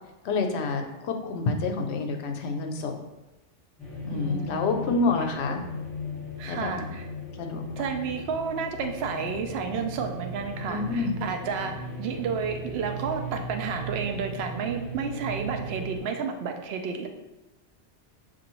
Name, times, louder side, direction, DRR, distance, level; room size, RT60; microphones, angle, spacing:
voice 1, 0.2-3.0 4.0-5.6 6.5-7.0 7.4-7.6 10.7-11.1, left 3 dB, 70° left, 4 dB, 0.8 m, -28 dB
sound 1, 3.8-16.0, left 1 dB, ahead, 1.2 m, -37 dB
voice 2, 4.1-4.9 6.4-7.1 7.8-17.1, right 6 dB, 65° right, 4 dB, 0.8 m, -31 dB
6.1 x 2.5 x 2.9 m, 1.0 s
omnidirectional pair, 1.2 m